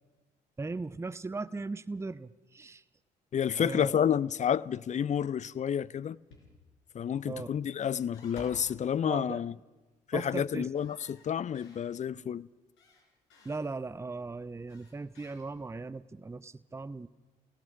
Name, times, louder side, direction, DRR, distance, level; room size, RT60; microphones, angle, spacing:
voice 1, 0.6-2.8 3.6-4.1 7.2-7.5 9.0-9.4 10.1-10.7 12.2-12.3 13.4-17.1, right 3 dB, 15° right, 0.7 m, -38 dB
voice 2, 3.3-6.2 6.9-9.5 10.1-12.5, left 8 dB, 35° left, 0.6 m, -30 dB
sound 1, 6.3-6.8 7.7-8.7 10.7-11.9 12.8-13.6 14.7-15.8, left 3 dB, 70° left, 4.8 m, -54 dB
28.0 x 17.0 x 5.9 m
figure-of-eight pair, 45°, 21 cm